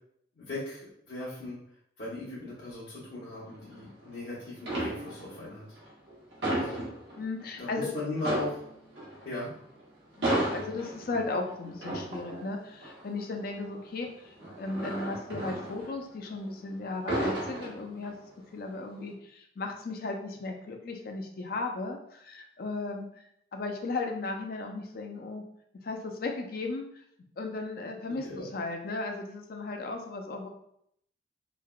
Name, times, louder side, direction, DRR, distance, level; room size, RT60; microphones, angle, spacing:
voice 1, 0.4-1.6 2.0-5.6 6.5-6.8 7.6-8.5 9.2-9.5 28.2-28.4, left 2 dB, 75° left, -11 dB, 1.0 m, -37 dB
sound 1, 3.5-4.2 4.6-5.4 5.8-7.5 7.8-7.9 8.2-16.5 16.8-18.3 18.7-19.0, right 1 dB, 80° right, 0.9 m, -34 dB
voice 2, 7.2-7.9 10.1-18.2 18.5-23.2 23.5-25.5 25.8-27.0 27.4-30.5, left 3 dB, 55° left, 3 dB, 0.4 m, -36 dB
3.2 x 2.2 x 2.3 m, 0.72 s
head